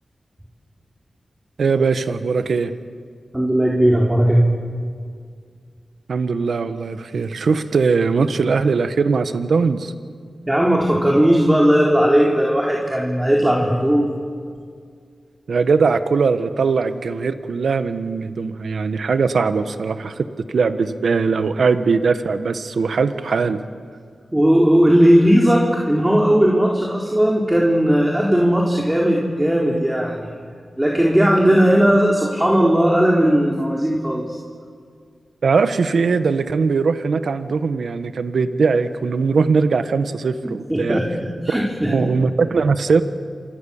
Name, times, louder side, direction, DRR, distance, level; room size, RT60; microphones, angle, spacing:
voice 1, 1.6-2.7 6.1-9.9 15.5-20.3 20.5-23.6 35.4-41.0 41.5-41.6 41.9-43.0, right 4 dB, 80° right, 10 dB, 1.4 m, -20 dB
voice 2, 3.3-4.4 10.5-14.1 24.3-30.3 30.8-34.4 40.4-41.9, equal, 15° right, -2 dB, 4.2 m, -17 dB
27.5 x 26.5 x 7.3 m, 2.1 s
cardioid pair, 60°, 0 cm